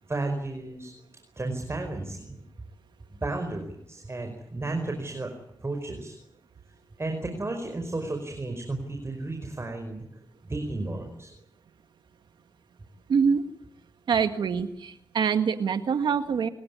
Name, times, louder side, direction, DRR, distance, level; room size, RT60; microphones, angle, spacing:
voice 1, 0.1-0.9 1.3-2.3 3.2-5.3 5.6-6.1 7.0-10.1 10.4-11.3, right 2 dB, 35° right, 4 dB, 5.1 m, -33 dB
voice 2, 13.1-13.4 14.1-16.5, right 6 dB, 85° right, 9 dB, 1.8 m, -25 dB
28.0 x 17.0 x 9.7 m, 0.78 s
cardioid pair, 50°, 8 cm